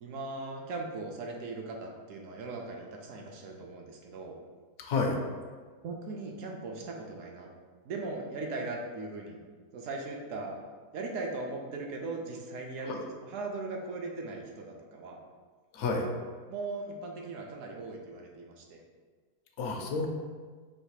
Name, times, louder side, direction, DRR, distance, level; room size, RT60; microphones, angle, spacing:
voice 1, 0.0-4.4 5.8-7.5 7.8-9.4 9.7-10.6 10.9-15.2 16.5-18.8, right 3 dB, 70° right, 1 dB, 0.8 m, -39 dB
voice 2, 4.8-5.2 12.9-13.0 15.7-16.1 19.6-20.1, left 3 dB, 65° left, 2 dB, 0.7 m, -30 dB
3.2 x 2.9 x 4.6 m, 1.5 s
omnidirectional pair, 1.7 m